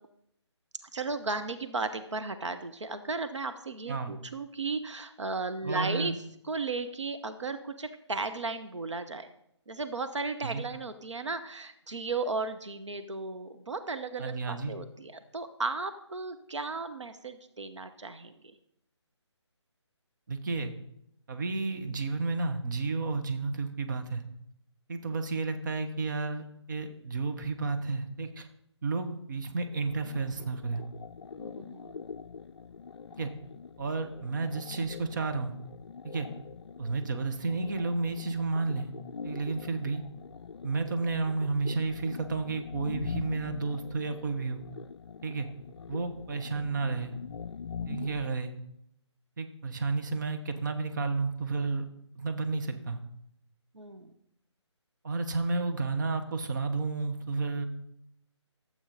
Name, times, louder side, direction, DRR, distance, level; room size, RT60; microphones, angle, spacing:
voice 1, 0.9-6.1 6.5-9.3 9.7-18.4 31.4-32.0 36.8-37.0 47.8-48.1 53.7-54.1, right 3 dB, 75° right, 9 dB, 0.9 m, -35 dB
voice 2, 5.6-6.1 10.4-10.6 14.2-14.8 20.3-20.7 21.3-24.2 24.9-28.5 28.8-30.8 33.2-33.3 33.8-35.5 36.0-36.3 36.8-38.9 39.2-40.0 40.6-44.6 45.2-45.5 45.9-47.1 47.9-48.5 49.4-51.8 52.1-53.0 55.0-57.7, right 3 dB, 40° right, 6 dB, 1.1 m, -31 dB
sound 1, 29.9-48.3, left 6 dB, 60° left, 0.4 m, -43 dB
12.5 x 7.8 x 4.0 m, 0.76 s
figure-of-eight pair, 150°, 15 cm